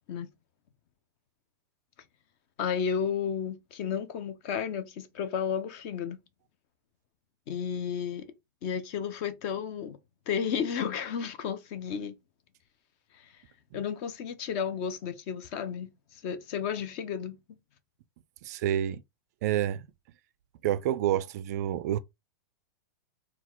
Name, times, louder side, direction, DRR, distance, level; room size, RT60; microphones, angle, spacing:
voice 1, 2.6-6.2 7.5-8.3 8.6-10.0 10.3-12.2 13.1-13.3 13.7-17.4, left 7 dB, 35° left, 0.7 m, -32 dB
voice 2, 18.4-19.0 19.4-19.9 20.6-22.0, right 11 dB, 45° right, 0.4 m, -28 dB
3.9 x 2.4 x 4.4 m
supercardioid pair, 160°, 12 cm